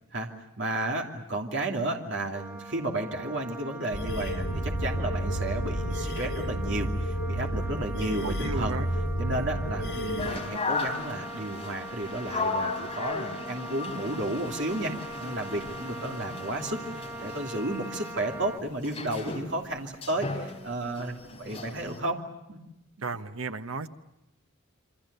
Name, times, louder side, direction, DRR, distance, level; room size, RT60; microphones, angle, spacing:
voice 1, 0.6-8.8 9.2-14.9 15.2-22.2 22.5-22.6, right 1 dB, 55° right, 1 dB, 2.8 m, -32 dB
Wind instrument woodwind instrument, 2.3-18.6, right 2 dB, 10° right, 1.0 m, -42 dB
sound 1, 3.9-10.4, equal, 65° left, 3.6 m, -31 dB
voice 2, 8.2-8.9 23.0-23.9, right 3 dB, 80° right, 9 dB, 1.2 m, -34 dB
sound 2, 10.2-22.0, left 3 dB, 25° left, 3.7 m, -36 dB
28.0 x 25.5 x 6.8 m, 0.91 s
head